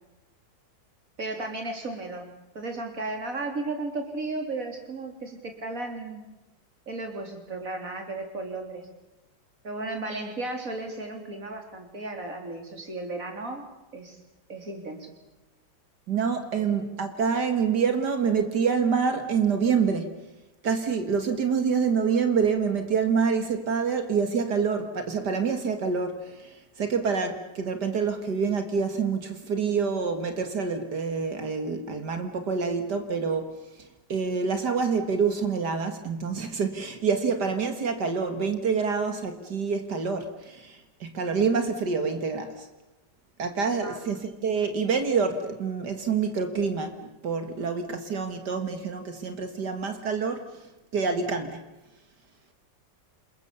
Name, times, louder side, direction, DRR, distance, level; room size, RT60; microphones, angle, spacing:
voice 1, 1.2-2.3 2.5-6.2 6.9-8.8 9.6-13.7 13.9-14.2 14.5-15.1 16.6-16.7 43.8-44.0, right 2 dB, 45° right, 4.1 m, -34 dB
voice 2, 16.1-20.2 20.6-33.6 34.1-42.7 43.4-50.6 50.9-51.6, right 5 dB, 65° right, 2.4 m, -27 dB
28.5 x 21.0 x 7.0 m
omnidirectional pair, 1.9 m